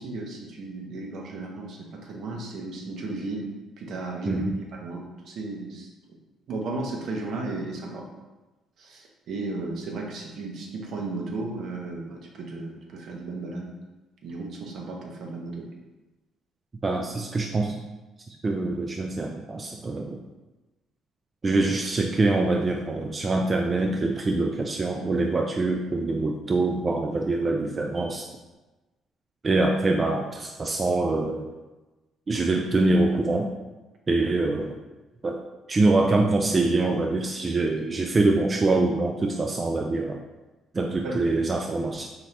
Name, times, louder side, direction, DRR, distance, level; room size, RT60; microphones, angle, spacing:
voice 1, 0.0-3.5 3.8-4.4 4.7-5.9 6.5-8.1 8.8-13.7 14.2-15.7 41.0-41.2, right 3 dB, 65° right, 0 dB, 0.8 m, -34 dB
voice 2, 4.3-4.6 16.8-17.8 18.4-20.2 21.4-28.3 29.4-31.5 32.3-33.5 34.1-34.7 35.2-35.4 35.7-40.2 40.7-42.1, right 2 dB, 30° right, 1 dB, 0.3 m, -24 dB
4.1 x 2.8 x 3.2 m, 1.1 s
supercardioid pair, 75°, 0 cm